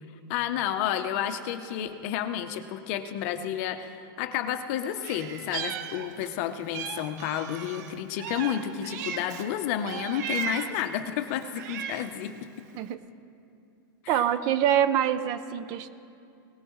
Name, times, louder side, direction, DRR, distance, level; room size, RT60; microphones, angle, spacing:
voice 1, 0.3-12.5 14.0-14.3, left 10 dB, 40° left, 9 dB, 0.8 m, -31 dB
Meow, 5.0-6.4 6.7-9.5 9.9-10.9 11.4-12.2, right 8 dB, 50° right, 1.0 m, -36 dB
voice 2, 14.1-15.9, right 10 dB, 30° right, 12 dB, 0.6 m, -25 dB
19.5 x 18.5 x 3.2 m, 2.5 s
supercardioid pair, 165°, 12 cm